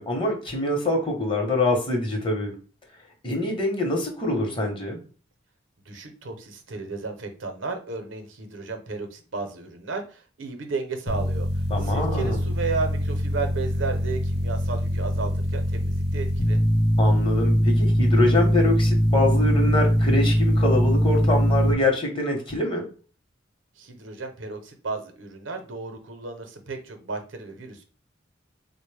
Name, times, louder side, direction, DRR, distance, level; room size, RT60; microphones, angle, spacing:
voice 1, 0.0-2.5 3.2-5.0 11.7-12.4 17.0-22.9, left 1 dB, 25° left, 2 dB, 0.8 m, -25 dB
voice 2, 5.9-16.6 23.8-27.8, right 4 dB, 80° right, 6 dB, 0.7 m, -34 dB
sound 1, 11.1-21.7, equal, 55° left, 0.5 m, -22 dB
3.9 x 2.1 x 3.2 m, 0.38 s
head